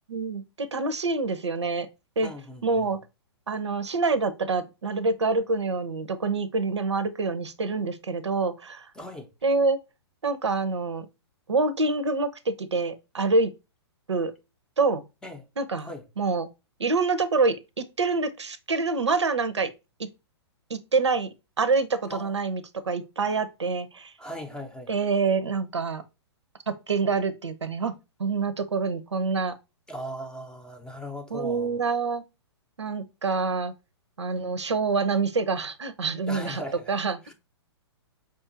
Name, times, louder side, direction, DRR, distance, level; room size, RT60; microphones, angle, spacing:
voice 1, 0.1-1.9 2.2-2.3 2.6-3.0 3.5-8.9 9.4-9.8 10.2-11.1 11.5-13.5 14.1-14.3 14.8-15.0 15.6-15.9 16.2-16.5 16.8-19.7 20.0-20.1 20.7-21.3 21.6-24.1 24.9-26.0 26.7-27.9 28.2-29.5 31.3-32.2 32.8-33.7 34.2-36.6 36.9-37.2, right 4 dB, 80° right, 0.6 m, -26 dB
voice 2, 2.2-2.9 9.0-9.3 15.2-15.4 15.8-16.0 22.1-22.3 24.2-24.9 29.9-31.7 36.3-36.9 37.2-37.3, equal, 5° left, 0.6 m, -38 dB
5.1 x 2.5 x 2.6 m
figure-of-eight pair, 115°, 14 cm